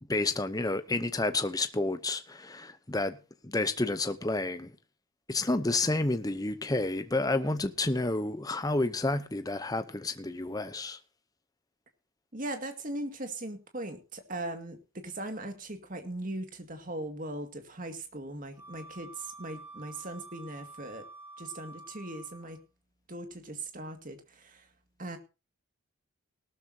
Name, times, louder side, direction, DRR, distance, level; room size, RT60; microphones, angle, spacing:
voice 1, 0.1-3.2 3.4-4.7 5.3-11.0, left 2 dB, 15° left, 0.7 m, -30 dB
voice 2, 12.3-21.0 21.4-22.6 23.1-24.7 25.0-25.2, right 1 dB, 40° right, 2.1 m, -39 dB
Wind instrument woodwind instrument, 18.6-22.6, right 3 dB, 10° right, 2.1 m, -49 dB
18.0 x 13.0 x 2.8 m
head